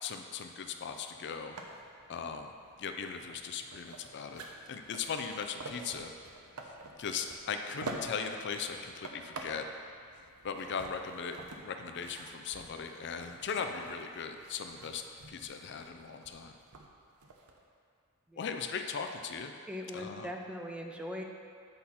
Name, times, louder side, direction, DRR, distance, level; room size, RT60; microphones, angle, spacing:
voice 1, 0.0-1.6 2.1-2.5 2.8-4.4 4.7-6.1 7.0-9.7 10.4-16.5 18.4-19.5 19.9-20.3, left 6 dB, 55° left, 6 dB, 0.5 m, -38 dB
sound 1, 1.5-17.6, right 2 dB, 85° right, 0.8 m, -48 dB
voice 2, 19.7-21.2, equal, 5° right, 2 dB, 0.4 m, -40 dB
8.5 x 4.2 x 5.6 m, 2.3 s
head